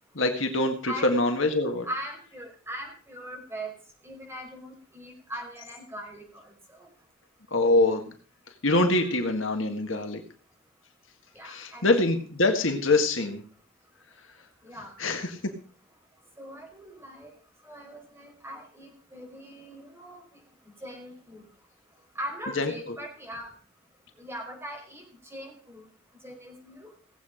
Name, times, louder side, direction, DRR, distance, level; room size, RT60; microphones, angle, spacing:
voice 1, 0.1-1.9 7.5-8.1 8.5-10.2 11.4-13.4 15.0-15.6 22.6-23.0, left 2 dB, 70° left, 5 dB, 1.8 m, -25 dB
voice 2, 0.9-1.2 1.8-3.7 4.0-6.5 6.8-6.9 9.0-9.1 11.3-11.8 14.6-14.9 16.4-17.3 17.6-20.2 20.8-21.4 22.1-23.5 24.2-25.0 25.3-25.8 26.2-26.9, equal, 10° right, 0 dB, 4.9 m, -40 dB
18.0 x 8.3 x 5.0 m, 0.42 s
head